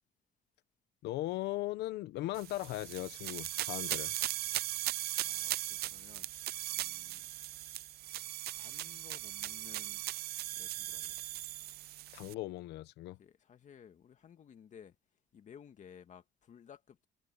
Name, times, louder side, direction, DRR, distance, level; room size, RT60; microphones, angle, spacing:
voice 1, 1.0-4.1 12.1-13.2, left 16 dB, 85° left, 1.1 m, -38 dB
sound 1, 2.3-12.3, right 15 dB, 70° right, 0.6 m, -38 dB
voice 2, 4.8-6.3 6.7-7.3 7.7-8.3 8.6-10.1 10.5-11.2 13.2-15.0 15.3-17.1, left 8 dB, 45° left, 2.2 m, -57 dB
cardioid pair, 110°, 17 cm